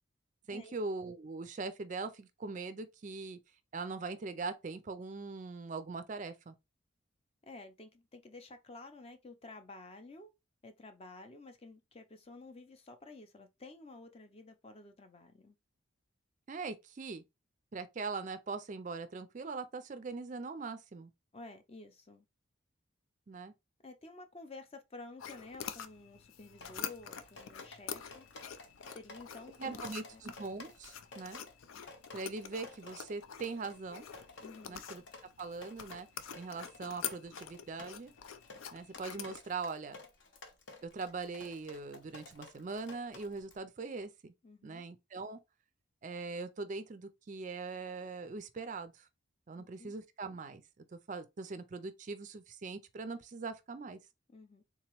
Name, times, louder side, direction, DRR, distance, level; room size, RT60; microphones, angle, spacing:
voice 1, 0.5-3.4 3.7-6.5 16.5-17.2 17.7-21.1 23.3-23.5 29.6-31.4 32.1-34.1 34.7-35.0 35.4-36.1 36.4-38.1 38.7-40.0 40.8-44.3 44.6-45.4 46.0-49.1 49.5-50.6 50.9-54.0, right 4 dB, 40° right, 0.3 m, -41 dB
voice 2, 7.4-10.3 10.6-15.5 21.3-22.2 23.8-28.3 28.9-30.2 34.4-34.8 44.4-44.8 49.6-50.0 54.3-54.6, left 2 dB, 30° left, 0.5 m, -52 dB
sound 1, 25.2-39.4, left 8 dB, 85° left, 0.4 m, -46 dB
Drip, 26.6-43.6, left 3 dB, 65° left, 0.8 m, -53 dB
3.7 x 2.9 x 3.0 m
head